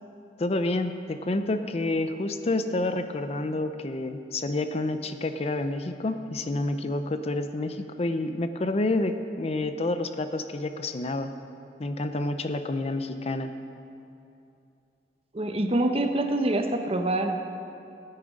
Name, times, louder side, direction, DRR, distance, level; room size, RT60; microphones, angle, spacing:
voice 1, 0.4-11.3 11.8-13.5, left 2 dB, 35° left, 9 dB, 0.5 m, -29 dB
voice 2, 15.3-17.4, right 1 dB, 35° right, 5 dB, 0.8 m, -25 dB
16.0 x 9.5 x 5.1 m, 2.6 s
head